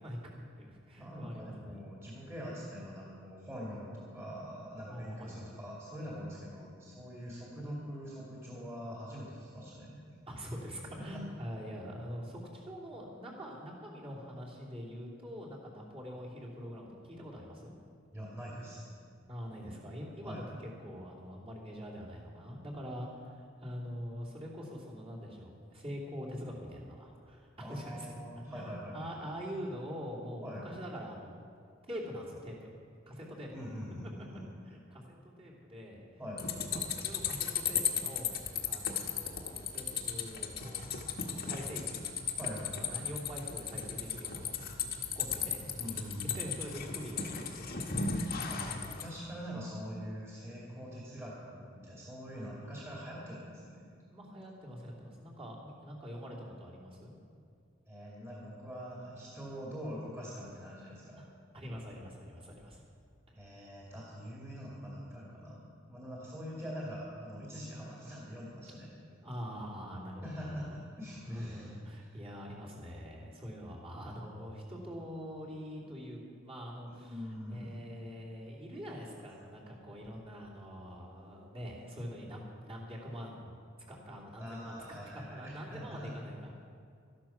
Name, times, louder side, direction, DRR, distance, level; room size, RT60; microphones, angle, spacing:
voice 1, 0.0-1.8 4.9-5.5 10.3-17.7 19.3-28.1 28.4-31.4 31.9-32.6 33.1-33.5 34.7-36.0 36.7-38.4 38.7-42.0 42.9-45.7 46.2-47.9 48.4-48.5 52.6-52.7 54.1-57.1 61.2-61.3 61.5-62.8 63.3-63.5 69.2-70.8 71.2-83.6 83.9-85.0 85.3-86.5, equal, 30° right, -5 dB, 3.0 m, -44 dB
voice 2, 1.0-10.1 11.0-11.1 18.1-18.8 20.2-20.4 27.6-29.4 30.4-30.7 33.5-34.5 36.2-36.5 42.4-43.0 45.8-46.5 48.5-53.9 57.9-61.6 63.4-68.9 70.2-71.7 75.8-75.9 76.9-77.7 84.4-86.1, equal, 15° right, -5 dB, 2.4 m, -44 dB
sound 1, 36.4-49.1, left 7 dB, 50° left, 1.3 m, -36 dB
13.5 x 12.0 x 5.9 m, 2.4 s
head